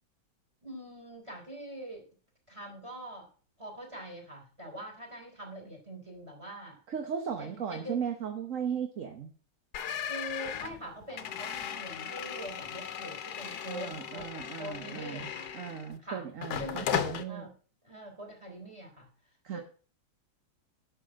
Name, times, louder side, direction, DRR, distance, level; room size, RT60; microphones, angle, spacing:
voice 1, 0.6-2.0 2.5-3.3 3.6-6.8 7.4-8.0 10.1-15.5 16.0-16.3 16.6-17.6 17.8-19.1 19.5-19.6, right 1 dB, 15° right, 3 dB, 3.7 m, -44 dB
voice 2, 6.9-9.3 13.7-15.3 15.5-17.4 19.4-19.6, right 7 dB, 50° right, 5 dB, 1.3 m, -36 dB
sound 1, 9.7-16.0 16.4-17.2, left 9 dB, 65° left, 1.4 m, -37 dB
11.0 x 6.7 x 6.3 m, 0.40 s
omnidirectional pair, 1.9 m